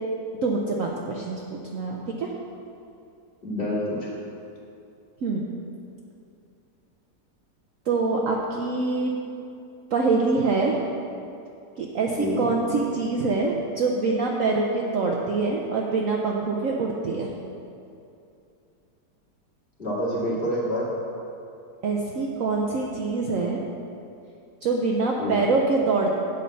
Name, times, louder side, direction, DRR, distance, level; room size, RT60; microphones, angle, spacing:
voice 1, 0.4-1.4 1.7-2.3 5.2-5.5 7.9-9.1 9.9-10.8 11.8-17.3 21.8-23.6 24.6-26.2, right 3 dB, 60° right, -1 dB, 0.9 m, -25 dB
voice 2, 3.4-4.2 12.2-12.4 19.8-20.9 25.2-25.4, left 1 dB, 30° left, -8 dB, 2.4 m, -27 dB
8.4 x 5.5 x 7.0 m, 2.6 s
omnidirectional pair, 1.9 m